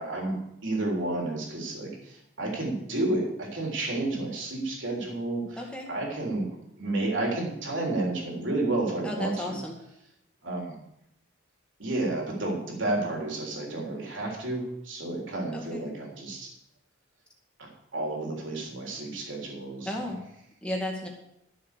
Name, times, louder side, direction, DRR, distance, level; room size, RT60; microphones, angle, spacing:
voice 1, 0.0-6.5 6.8-9.6 10.4-10.8 11.8-16.5 17.6-20.0, right 2 dB, 75° right, -1 dB, 3.5 m, -31 dB
voice 2, 5.6-5.9 9.0-9.8 15.5-15.9 19.9-20.2 20.6-21.1, left 1 dB, 5° left, -1 dB, 2.1 m, -33 dB
13.0 x 6.8 x 6.7 m, 0.82 s
head